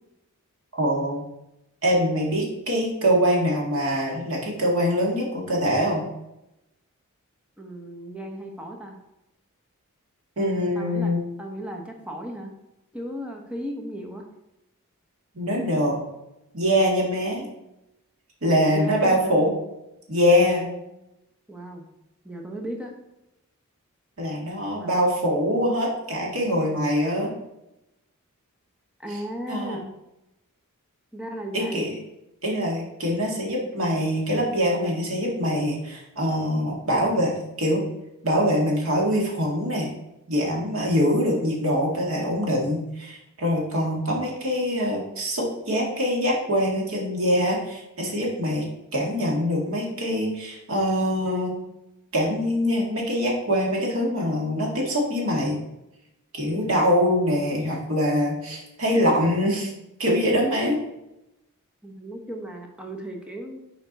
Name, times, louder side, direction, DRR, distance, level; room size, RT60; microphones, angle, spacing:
voice 1, 0.7-1.2 1.8-6.0 10.4-11.2 15.4-16.0 16.5-17.5 18.4-19.5 20.1-20.7 24.2-27.3 29.5-29.8 31.5-31.9 32.4-37.8 38.2-39.9 40.3-48.6 48.9-51.6 52.1-55.6 56.3-59.7 60.0-60.8, equal, 70° right, -1 dB, 1.8 m, -23 dB
voice 2, 7.6-9.0 10.7-12.5 12.9-14.3 18.7-19.4 21.5-21.9 22.2-22.9 24.7-25.0 29.0-29.9 31.1-32.0 61.8-63.6, right 1 dB, 5° right, 1 dB, 0.8 m, -35 dB
6.8 x 4.5 x 4.0 m, 0.90 s
head